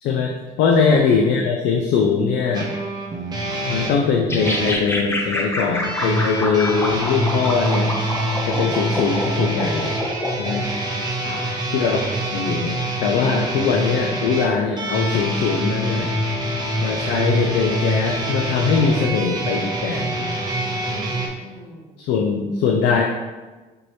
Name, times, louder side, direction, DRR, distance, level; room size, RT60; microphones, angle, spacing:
voice 1, 0.0-0.3 0.6-2.7 3.7-7.9 8.4-10.0 10.4-10.7 11.7-12.1 12.3-16.1 16.8-20.3 22.0-23.0, left 5 dB, 80° left, 1 dB, 0.4 m, -21 dB
voice 2, 0.8-1.3 11.2-11.5 20.8-22.1, equal, 30° left, -7 dB, 1.3 m, -39 dB
sound 1, 2.5-4.8 5.8-21.3, right 1 dB, 25° right, 0.7 m, -25 dB
sound 2, 4.3-10.6, left 1 dB, 15° left, 0.5 m, -27 dB
4.5 x 2.6 x 3.1 m, 1.3 s
cardioid pair, 110°, 17 cm